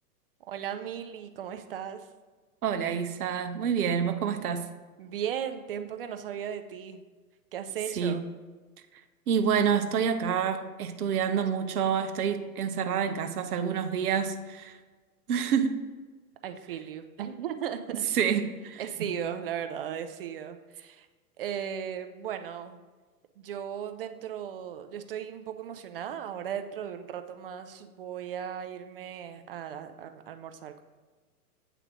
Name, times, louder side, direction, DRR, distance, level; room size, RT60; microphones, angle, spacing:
voice 1, 0.5-2.1 5.0-7.0 7.5-8.2 16.4-18.3 18.8-21.1 21.4-22.8 23.4-30.8, right 9 dB, 40° right, 8 dB, 0.4 m, -36 dB
voice 2, 2.6-4.7 8.0-8.2 9.3-14.8 15.3-15.8 18.1-19.2, right 7 dB, 70° right, 8 dB, 0.8 m, -28 dB
8.7 x 3.3 x 5.0 m, 1.3 s
hypercardioid pair, 125°, 47 cm